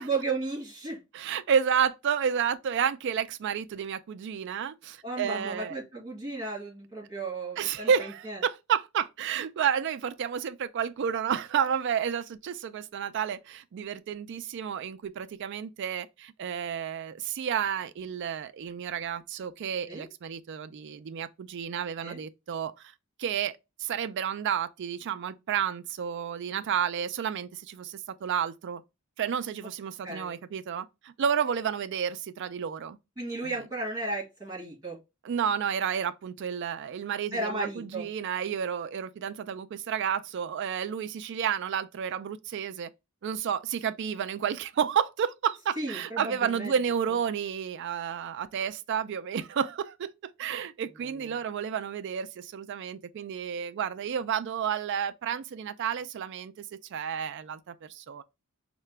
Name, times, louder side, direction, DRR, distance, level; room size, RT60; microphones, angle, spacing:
voice 1, 0.0-1.0 5.0-8.4 19.9-20.1 22.0-22.2 30.0-30.4 33.2-35.0 37.3-38.1 45.8-46.8 51.0-51.4, right 3 dB, 20° right, 2.0 m, -34 dB
voice 2, 1.1-5.8 7.6-22.7 23.2-28.8 29.2-33.0 33.4-33.5 35.2-42.9 43.2-58.2, right 8 dB, 55° right, 0.3 m, -31 dB
4.7 x 2.2 x 3.2 m
head